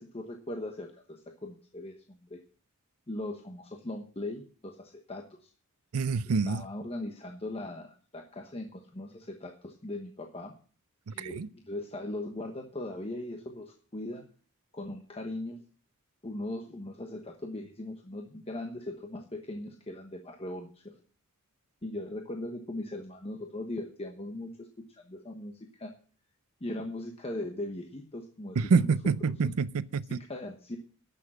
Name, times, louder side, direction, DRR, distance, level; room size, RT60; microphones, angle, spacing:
voice 1, 0.0-2.4 3.1-5.5 6.5-10.5 11.1-14.2 14.7-15.6 16.2-21.0 21.8-25.9 26.6-28.9 29.4-29.5 30.1-30.8, left 1 dB, 30° left, 1.1 m, -39 dB
voice 2, 5.9-6.6 11.1-11.5 28.6-30.2, right 5 dB, 85° right, 0.5 m, -27 dB
11.0 x 6.8 x 7.4 m
head